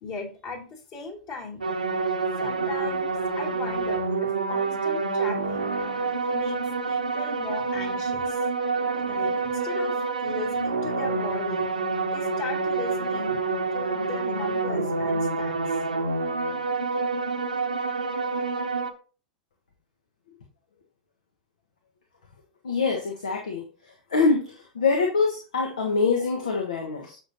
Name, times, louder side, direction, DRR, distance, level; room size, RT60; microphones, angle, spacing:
voice 1, 0.0-1.6 2.4-3.1 3.4-5.8 6.3-8.4 9.1-11.7 12.1-13.4 13.7-15.6, left 4 dB, 40° left, 0 dB, 3.0 m, -38 dB
sound 1, 1.6-18.9, right 4 dB, 80° right, 1.0 m, -27 dB
voice 2, 22.6-23.7 24.1-27.2, left 4 dB, 65° left, 2 dB, 1.3 m, -24 dB
9.4 x 6.6 x 2.8 m, 0.37 s
figure-of-eight pair, 95°, 4 cm